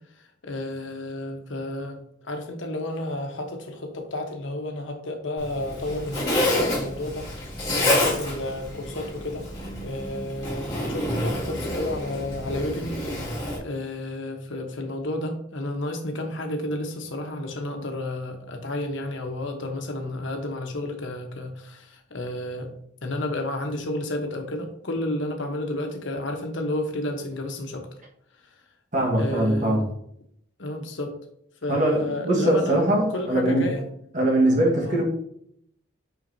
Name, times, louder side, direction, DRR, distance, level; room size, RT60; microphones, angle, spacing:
voice 1, 0.4-2.0 2.2-7.3 7.8-9.5 9.8-22.7 23.0-27.9 29.2-29.8 30.6-31.1 31.6-32.8 33.1-33.8 34.8-35.0, left 1 dB, 75° left, 4 dB, 1.1 m, -31 dB
Zipper (clothing), 5.4-13.6, left 1 dB, 20° left, 2.2 m, -28 dB
voice 2, 28.9-29.9 31.7-33.7 34.1-35.0, right 1 dB, 40° right, -2 dB, 1.5 m, -22 dB
6.1 x 5.6 x 2.7 m, 0.70 s
head